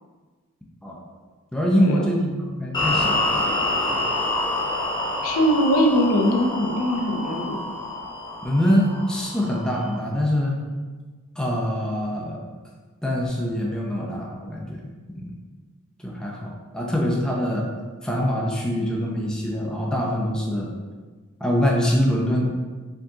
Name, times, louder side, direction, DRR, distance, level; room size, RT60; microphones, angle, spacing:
voice 1, 1.5-3.3 3.9-4.0 8.4-10.6 11.4-12.5 13.0-15.3 16.0-17.7 18.0-20.7 21.4-22.5, equal, 5° left, -3 dB, 0.5 m, -24 dB
sound 1, 2.7-9.9, left 2 dB, 20° left, 1.0 m, -27 dB
voice 2, 5.2-7.6, equal, 75° left, 2 dB, 0.6 m, -21 dB
4.5 x 3.6 x 2.8 m, 1.4 s
head